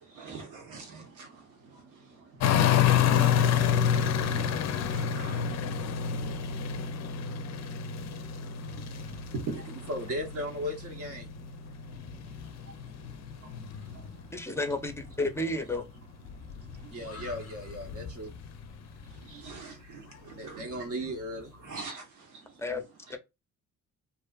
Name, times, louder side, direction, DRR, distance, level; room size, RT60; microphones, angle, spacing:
voice 1, 0.2-1.3 4.9-5.4 9.5-9.6 19.3-20.6 21.7-22.0, right 4 dB, 80° right, 1.0 m, -41 dB
sound 1, 2.4-14.4 14.7-19.6 20.1-20.2, left 8 dB, 60° left, 0.5 m, -29 dB
voice 2, 9.9-11.2 16.9-18.3 20.4-21.5, equal, 50° right, 0.7 m, -36 dB
voice 3, 14.3-15.8 22.6-22.8 23.1-23.2, left 2 dB, 10° left, 0.6 m, -31 dB
2.6 x 2.4 x 2.3 m
cardioid pair, 90°, 30 cm